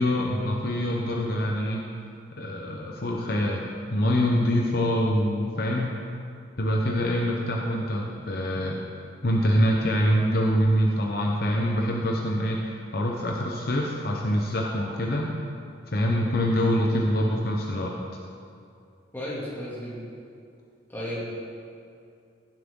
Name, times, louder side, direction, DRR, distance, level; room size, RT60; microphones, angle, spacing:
voice 1, 0.0-1.9 2.4-3.6 3.9-5.9 6.6-8.8 9.2-15.3 15.9-17.9, equal, 55° left, -1 dB, 0.9 m, -25 dB
voice 2, 19.1-20.1 20.9-21.3, equal, 10° left, -7 dB, 2.6 m, -34 dB
16.0 x 7.6 x 3.8 m, 2.4 s
head